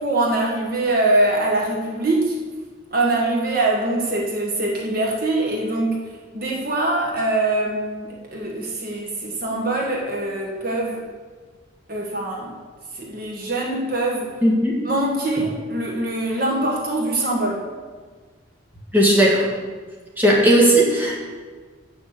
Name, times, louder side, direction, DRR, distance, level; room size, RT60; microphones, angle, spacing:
voice 1, 0.0-2.4 2.9-6.0 6.3-11.1 11.9-12.5 12.9-14.3 14.8-17.6, right 2 dB, 45° right, -2 dB, 1.4 m, -23 dB
voice 2, 14.4-14.8 18.9-19.4 20.2-21.2, right 1 dB, 10° right, -5 dB, 1.7 m, -16 dB
8.7 x 6.4 x 6.8 m, 1.4 s
head